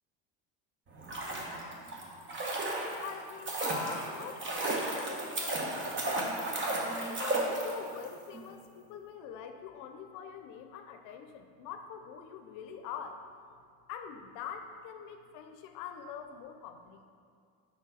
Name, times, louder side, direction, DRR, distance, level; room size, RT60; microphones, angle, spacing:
sound 1, 0.9-8.1 8.3-8.4, right 2 dB, 35° right, 1.2 m, -34 dB
voice 1, 2.5-6.6 7.1-13.2 13.9-17.0, left 8 dB, 70° left, 6 dB, 0.6 m, -45 dB
6.3 x 5.7 x 4.1 m, 2.3 s
cardioid pair, 120°, 34 cm